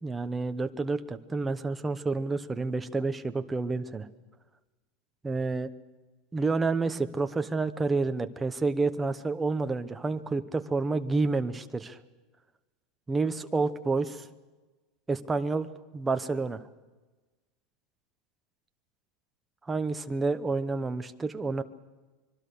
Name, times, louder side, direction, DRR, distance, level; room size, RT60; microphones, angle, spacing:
voice 1, 0.0-4.1 5.2-5.7 6.3-12.0 13.1-14.3 15.1-16.6 19.6-21.6, right 3 dB, 10° right, 9 dB, 0.9 m, -29 dB
25.5 x 23.0 x 6.7 m, 1.2 s
supercardioid pair, 175°, 0 cm